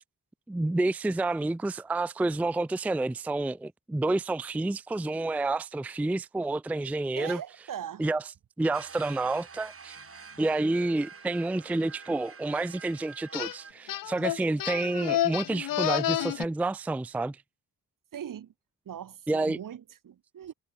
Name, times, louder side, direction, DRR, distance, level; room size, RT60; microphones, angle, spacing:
voice 1, 0.5-7.4 8.0-8.2 8.6-10.0 10.4-17.4 19.3-19.6, right 2 dB, 5° right, 0.4 m, -29 dB
voice 2, 7.2-8.1 18.1-18.5 18.8-20.5, right 9 dB, 75° right, 3.1 m, -40 dB
sound 1, 8.7-13.7, right 5 dB, 40° right, 4.8 m, -48 dB
sound 2, 13.3-13.6 13.9-16.5, left 12 dB, 75° left, 0.9 m, -29 dB
cardioid pair, 105°, 33 cm